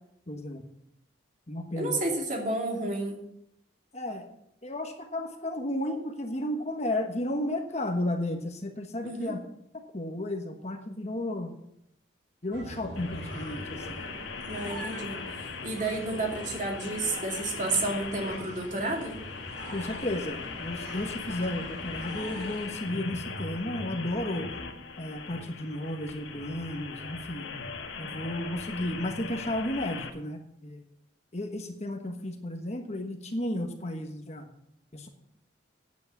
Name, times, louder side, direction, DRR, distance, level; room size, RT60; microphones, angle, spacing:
voice 1, 0.3-0.6 1.5-2.0 3.9-4.3 4.6-9.4 9.7-11.5 12.4-14.0 19.7-24.5 25.0-27.5 28.0-30.8 31.3-34.5 34.9-35.1, left 1 dB, 35° left, 4 dB, 1.2 m, -33 dB
voice 2, 1.8-3.2 9.0-9.3 14.5-19.2, right 2 dB, 40° right, 0 dB, 2.7 m, -31 dB
sound 1, 12.5-22.7, right 1 dB, 60° right, 3.1 m, -44 dB
sound 2, 13.0-30.1, left 4 dB, 85° left, 1.5 m, -40 dB
9.5 x 8.4 x 7.0 m, 0.77 s
head